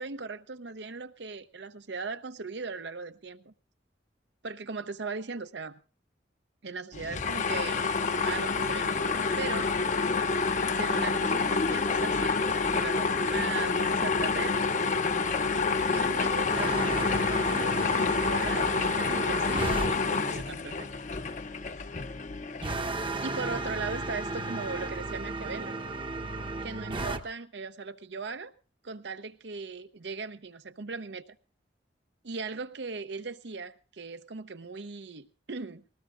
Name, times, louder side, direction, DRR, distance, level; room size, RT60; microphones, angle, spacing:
voice 1, 0.0-3.5 4.4-5.8 6.6-9.8 10.7-14.6 15.9-20.9 23.2-25.8 26.6-28.5 28.8-31.2 32.2-35.8, right 4 dB, 75° right, 11 dB, 0.8 m, -38 dB
sound 1, 6.9-22.7, left 4 dB, 40° left, 0.7 m, -28 dB
sound 2, 16.5-19.9 22.6-27.2, right 2 dB, 30° right, 0.8 m, -34 dB
19.5 x 19.5 x 2.5 m, 0.35 s
head